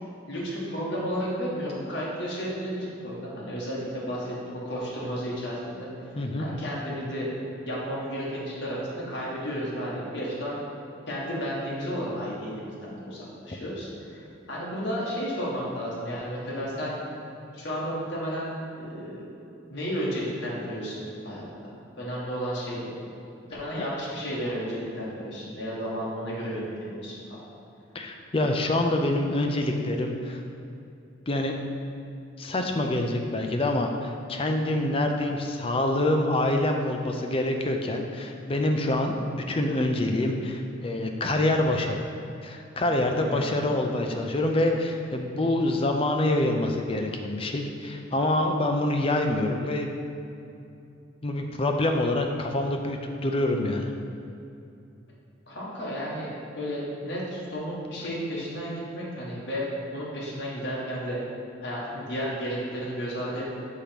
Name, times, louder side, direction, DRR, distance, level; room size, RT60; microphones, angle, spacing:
voice 1, 0.3-5.9 6.4-7.3 7.7-10.6 11.1-17.0 17.5-19.2 19.7-23.0 23.5-27.1 43.2-43.6 55.5-61.2 61.6-63.5, equal, 65° left, -6 dB, 1.4 m, -33 dB
voice 2, 6.2-6.5 27.9-30.4 31.3-31.5 32.4-42.0 42.4-49.9 51.2-53.9, left 1 dB, 30° left, 3 dB, 0.4 m, -26 dB
6.6 x 2.9 x 5.2 m, 2.7 s
head